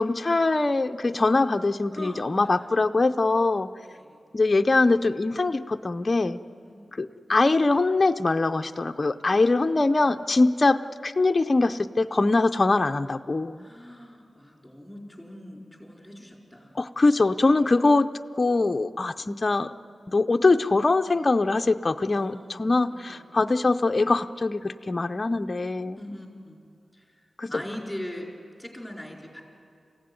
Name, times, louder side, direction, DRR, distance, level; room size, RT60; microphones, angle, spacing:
voice 1, 0.0-3.7 4.3-6.4 7.0-13.7 16.8-18.1 18.4-19.7 20.1-26.0 27.4-27.5, left 3 dB, 30° left, 5 dB, 0.5 m, -23 dB
voice 2, 1.9-2.7 3.8-4.2 6.6-7.0 9.3-9.7 13.6-16.9 22.1-23.4 26.0-26.6 26.9-27.2 27.5-28.3 28.6-29.4, left 1 dB, ahead, -1 dB, 4.5 m, -41 dB
30.0 x 16.0 x 9.6 m, 2.4 s
wide cardioid pair, 155°, 0 cm